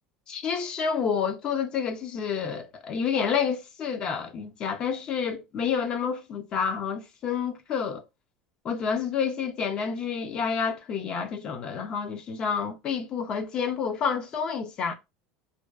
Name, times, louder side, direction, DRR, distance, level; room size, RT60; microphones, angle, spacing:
voice 1, 0.3-8.0 8.6-14.9, left 6 dB, 45° left, 0.5 m, -29 dB
2.4 x 2.2 x 2.3 m
supercardioid pair, 105°, 2 cm